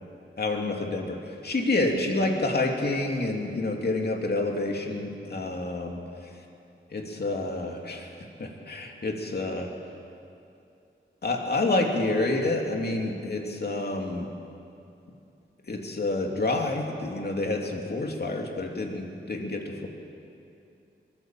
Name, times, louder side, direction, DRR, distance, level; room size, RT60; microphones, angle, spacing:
voice 1, 0.4-6.4 6.9-8.1 8.4-9.7 11.2-14.3 15.6-19.9, left 2 dB, 50° left, 2 dB, 2.9 m, -28 dB
22.0 x 16.5 x 7.6 m, 2.6 s
cardioid pair, 75°, 21 cm